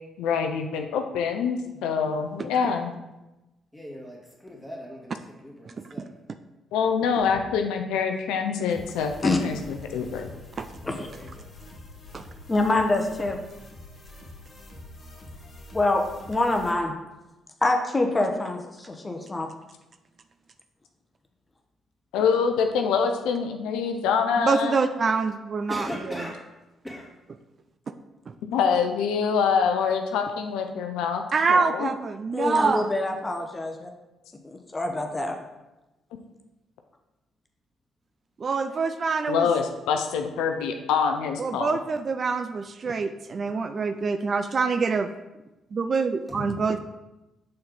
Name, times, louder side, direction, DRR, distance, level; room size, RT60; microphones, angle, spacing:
voice 1, 0.2-2.9 6.7-9.1 9.4-10.3 22.1-24.8 28.5-31.2 31.5-31.9 39.3-41.8, left 6 dB, 75° left, 5 dB, 0.5 m, -25 dB
voice 2, 2.1-2.5 5.6-5.9 10.6-10.7 12.1-12.3 24.4-26.2 28.3-28.4 31.3-32.9 38.4-39.5 41.4-45.1 45.7-46.8, right 4 dB, 45° right, 9 dB, 0.4 m, -26 dB
voice 3, 3.7-6.1 7.2-7.4 10.8-11.5 25.7-26.5 26.8-27.1 46.3-46.6, equal, ahead, -3 dB, 2.2 m, -39 dB
sound 1, 8.7-16.7, left 2 dB, 45° left, 1.7 m, -45 dB
voice 4, 12.5-13.4 15.7-16.9 17.6-19.5 32.3-33.9 34.4-35.3, left 2 dB, 25° left, 3 dB, 0.9 m, -25 dB
6.4 x 4.3 x 4.0 m, 1.0 s
hypercardioid pair, 50°, 0 cm